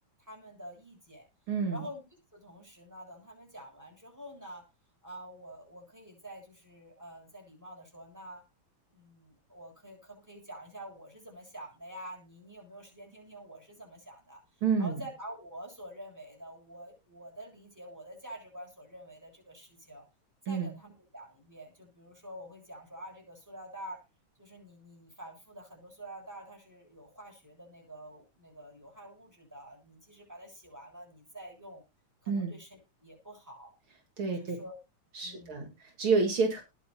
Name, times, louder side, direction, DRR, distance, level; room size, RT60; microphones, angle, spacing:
voice 1, 0.2-1.3 1.7-4.6 5.0-8.4 8.9-20.0 20.5-24.0 24.4-31.8 32.2-33.7 34.3-34.8 35.2-35.7, right 1 dB, 5° right, 1 dB, 7.3 m, -47 dB
voice 2, 1.5-1.8 14.6-15.0 20.5-20.7 32.3-32.5 34.2-34.6 35.1-36.6, right 4 dB, 70° right, 3 dB, 2.8 m, -29 dB
20.0 x 6.6 x 2.8 m, 0.26 s
omnidirectional pair, 2.4 m